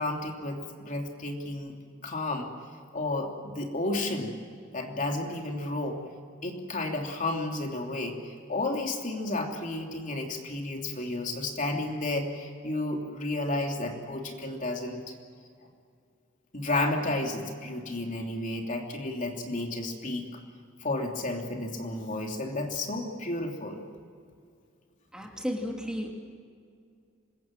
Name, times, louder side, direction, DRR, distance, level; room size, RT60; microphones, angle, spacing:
voice 1, 0.0-1.7 2.0-2.5 2.9-4.4 4.7-6.0 6.4-15.0 16.5-20.3 20.8-23.8, left 2 dB, 40° left, 2 dB, 3.0 m, -32 dB
voice 2, 25.1-26.1, equal, 5° right, 1 dB, 2.6 m, -33 dB
26.0 x 22.5 x 7.6 m, 2.2 s
head